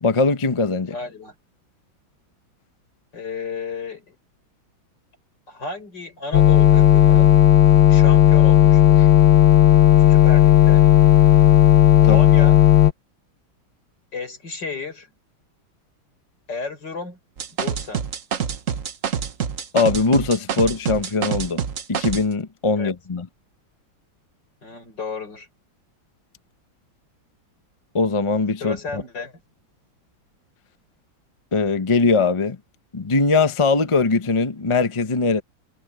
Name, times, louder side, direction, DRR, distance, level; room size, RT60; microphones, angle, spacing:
voice 1, 0.0-0.9 12.0-12.2 19.7-21.6 21.9-23.3 27.9-29.0 31.5-32.6 32.9-35.4, left 3 dB, 30° left, 0.6 m, -21 dB
voice 2, 0.9-1.3 3.1-4.2 5.5-7.4 7.9-9.1 10.1-10.9 12.0-12.6 14.1-15.1 16.5-17.2 17.6-18.0 22.8-23.0 24.6-25.5 28.6-29.4, left 4 dB, 60° left, 6.1 m, -33 dB
sound 1, 6.3-12.9, left 13 dB, 80° left, 1.9 m, -13 dB
sound 2, 17.4-22.2, right 8 dB, 45° right, 1.3 m, -26 dB
omnidirectional pair, 2.2 m